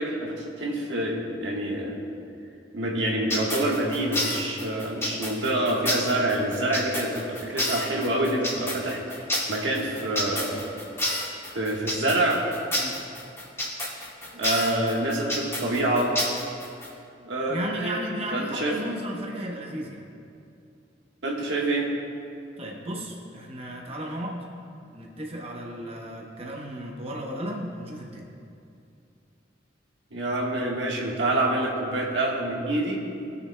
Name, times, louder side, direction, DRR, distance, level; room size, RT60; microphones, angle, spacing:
voice 1, 0.0-2.0 2.7-10.7 11.5-12.4 14.3-16.1 17.2-18.0 18.3-18.7 21.2-21.9 30.1-33.0, right 1 dB, 85° right, -2 dB, 1.4 m, -26 dB
sound 1, 3.3-16.9, left 1 dB, 15° left, 2.2 m, -29 dB
voice 2, 17.5-20.0 22.6-24.5 24.9-28.3, equal, 35° right, -1 dB, 0.8 m, -34 dB
19.5 x 6.7 x 2.2 m, 2.5 s
head